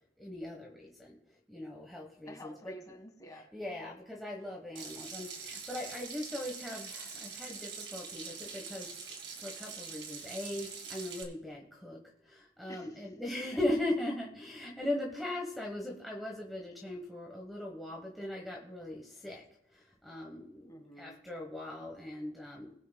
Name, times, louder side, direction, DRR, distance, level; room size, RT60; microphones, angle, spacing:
voice 1, 0.2-1.2 1.5-2.7 3.5-19.4 19.7-20.6 21.0-22.7, left 1 dB, ahead, 0 dB, 1.1 m, -39 dB
voice 2, 2.2-3.5 12.7-13.2 20.6-21.2, equal, 20° left, 4 dB, 1.6 m, -50 dB
Water tap faucet / Sink (filling or washing), 4.8-11.2, right 5 dB, 65° right, 1.9 m, -44 dB
20.0 x 8.5 x 2.3 m, 0.77 s
head